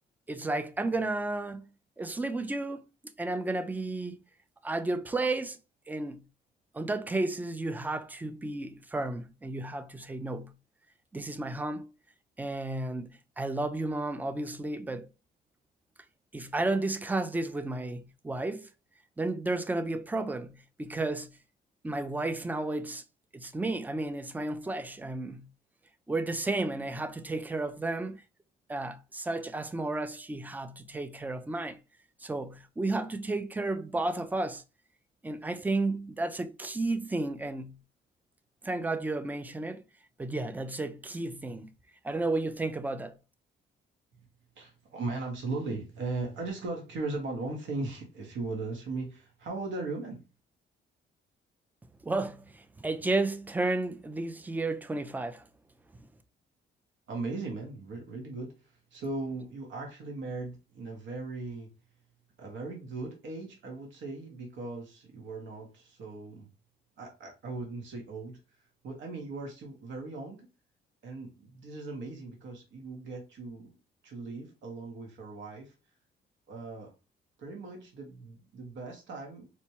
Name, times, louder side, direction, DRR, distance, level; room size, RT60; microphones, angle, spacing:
voice 1, 0.3-1.7 2.0-2.8 3.2-4.2 4.6-5.6 5.9-6.2 6.7-10.5 11.1-11.9 12.4-15.1 16.3-18.7 19.2-21.3 21.8-23.0 23.3-25.5 26.1-28.2 28.7-31.8 32.2-34.6 35.2-37.8 38.6-39.8 40.2-41.7 42.0-43.1 52.0-55.5, right 2 dB, 10° right, 0.4 m, -32 dB
voice 2, 44.6-50.2 57.1-61.7 62.4-66.5 67.0-68.4 68.8-70.5 71.0-73.7 74.0-75.7 76.5-76.9 77.4-79.5, right 3 dB, 75° right, 1.0 m, -38 dB
4.3 x 2.2 x 2.9 m
cardioid pair, 90°, 20 cm